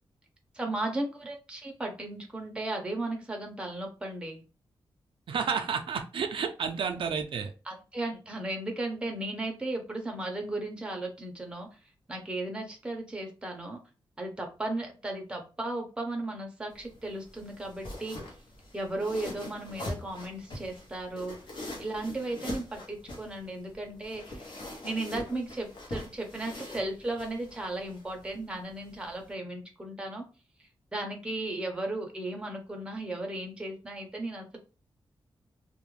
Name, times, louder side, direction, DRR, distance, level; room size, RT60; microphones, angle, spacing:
voice 1, 0.5-4.4 7.7-11.7 12.1-13.8 14.2-18.2 18.7-21.4 21.8-24.6 24.8-30.2 30.9-34.6, right 2 dB, 10° right, 2 dB, 0.6 m, -35 dB
voice 2, 5.3-7.5, right 6 dB, 70° right, 6 dB, 0.3 m, -31 dB
sound 1, 16.7-29.3, left 1 dB, 60° left, 0.8 m, -43 dB
2.3 x 2.1 x 3.0 m, 0.33 s
wide cardioid pair, 150°, 9 cm